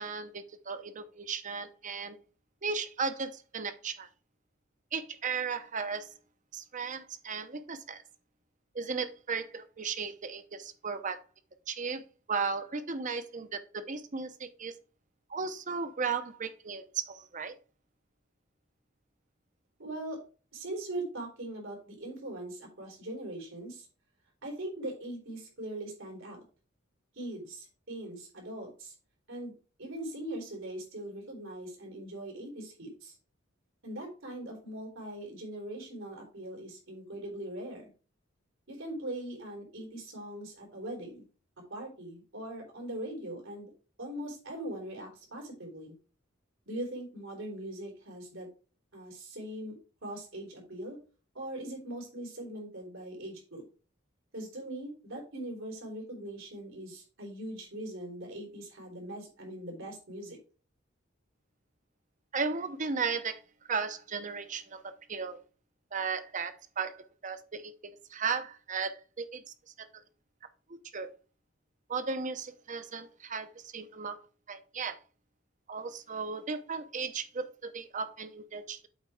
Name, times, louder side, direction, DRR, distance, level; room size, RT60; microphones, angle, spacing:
voice 1, 0.0-2.2 2.6-4.1 4.9-6.1 6.5-8.0 8.7-11.2 11.7-12.0 12.3-14.7 15.3-17.6 62.3-63.4 63.7-65.4 65.9-69.9 70.9-71.1 71.9-74.2 74.5-75.0 75.7-78.9, right 5 dB, 40° right, 11 dB, 0.8 m, -35 dB
voice 2, 19.8-20.2 20.5-23.9 24.4-26.4 27.1-28.9 29.3-29.5 29.8-33.1 33.8-37.9 38.7-41.2 41.7-43.7 44.0-45.9 46.7-48.5 48.9-49.7 50.0-51.0 51.3-53.6 54.3-60.4, right 1 dB, 90° right, -1 dB, 3.9 m, -41 dB
8.1 x 4.4 x 4.8 m, 0.36 s
head